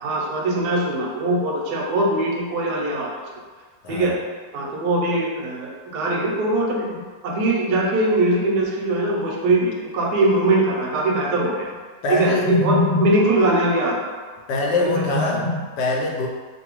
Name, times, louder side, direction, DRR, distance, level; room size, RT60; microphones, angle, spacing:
voice 1, 0.0-3.2 3.9-4.1 4.5-6.9 7.2-11.7 12.1-14.0 14.9-15.6, right 1 dB, 75° right, -1 dB, 1.1 m, -21 dB
voice 2, 3.8-4.2 12.0-12.6 14.5-16.3, left 3 dB, 75° left, -1 dB, 1.1 m, -24 dB
2.8 x 2.6 x 2.9 m, 1.5 s
omnidirectional pair, 1.9 m